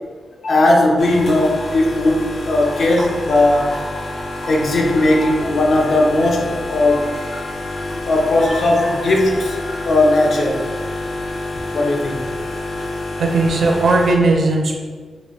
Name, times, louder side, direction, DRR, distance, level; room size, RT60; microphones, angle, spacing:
voice 1, 0.4-3.7 4.5-10.6 11.7-12.2, left 2 dB, 65° left, -1 dB, 0.7 m, -17 dB
sound 1, 1.0-14.1, left 2 dB, 90° left, 1.0 m, -28 dB
voice 2, 13.2-14.7, right 2 dB, 70° right, 1 dB, 0.6 m, -16 dB
3.1 x 2.6 x 4.4 m, 1.5 s
wide cardioid pair, 135°, 0 cm